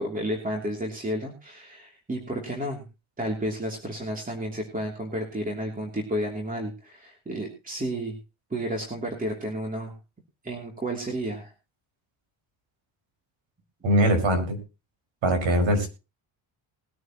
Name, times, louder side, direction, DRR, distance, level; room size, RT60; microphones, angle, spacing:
voice 1, 0.0-2.8 3.2-8.2 8.5-9.9 10.4-11.5, right 1 dB, 15° right, 1 dB, 3.1 m, -31 dB
voice 2, 13.8-14.6 15.2-15.9, equal, 70° right, 6 dB, 5.5 m, -21 dB
21.0 x 9.4 x 3.0 m, 0.30 s
cardioid pair, 130°, 48 cm